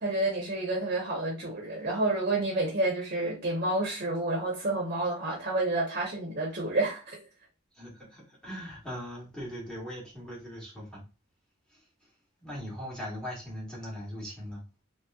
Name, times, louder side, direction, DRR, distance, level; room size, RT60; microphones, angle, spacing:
voice 1, 0.0-7.2, right 2 dB, 45° right, 0.9 m, -29 dB
voice 2, 7.7-11.0 11.7-11.8 12.4-14.6, equal, 5° left, 1.3 m, -40 dB
3.0 x 2.9 x 2.3 m
head